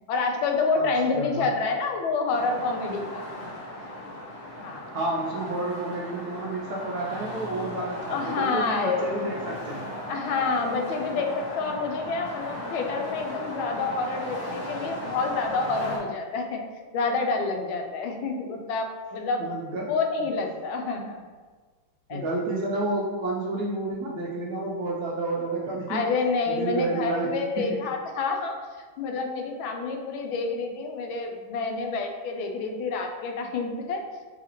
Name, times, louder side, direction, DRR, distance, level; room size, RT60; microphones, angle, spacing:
voice 1, 0.1-3.2 4.6-4.9 8.1-9.1 10.1-16.6 16.9-19.4 19.9-21.2 22.1-22.2 25.9-28.5 29.0-34.0, left 4 dB, 90° left, 3 dB, 1.4 m, -28 dB
voice 2, 1.1-1.5 4.9-9.9 11.1-11.2 19.4-19.9 20.2-20.3 22.1-26.0 26.5-27.3 27.6-27.8, right 2 dB, 70° right, -3 dB, 1.0 m, -30 dB
sound 1, 2.3-16.0, left 1 dB, 40° left, 1.2 m, -37 dB
4.9 x 3.2 x 2.9 m, 1.4 s
omnidirectional pair, 2.2 m